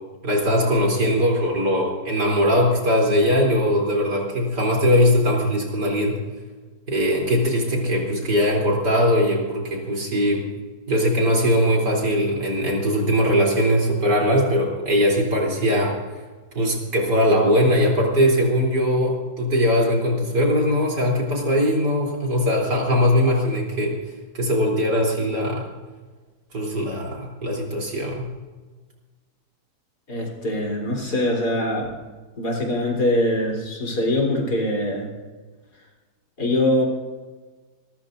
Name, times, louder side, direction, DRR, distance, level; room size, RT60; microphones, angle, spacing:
voice 1, 0.2-6.2 6.9-10.5 10.9-16.0 16.5-24.0 24.3-25.7 26.5-28.3, equal, 75° right, -2 dB, 4.1 m, -20 dB
voice 2, 30.1-31.9 32.4-35.1 36.4-36.9, left 1 dB, 70° left, -1 dB, 4.1 m, -23 dB
27.0 x 14.0 x 2.6 m, 1.4 s
omnidirectional pair, 1.8 m